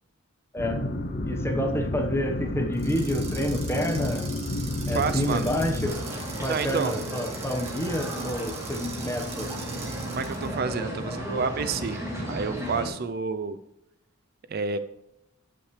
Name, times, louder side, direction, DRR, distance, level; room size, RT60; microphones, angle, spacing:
sound 1, 0.6-5.9, left 1 dB, 45° left, 0.7 m, -30 dB
voice 1, 1.3-4.3 4.9-9.5, equal, 10° left, 3 dB, 1.1 m, -29 dB
sound 2, 2.7-10.6, right 5 dB, 30° right, 1.8 m, -42 dB
voice 2, 4.9-5.5 6.5-7.0 10.1-13.6 14.5-14.8, right 5 dB, 50° right, 11 dB, 0.5 m, -29 dB
sound 3, 5.8-12.9, right 1 dB, 15° right, 2.9 m, -34 dB
14.5 x 6.0 x 3.2 m, 0.85 s
head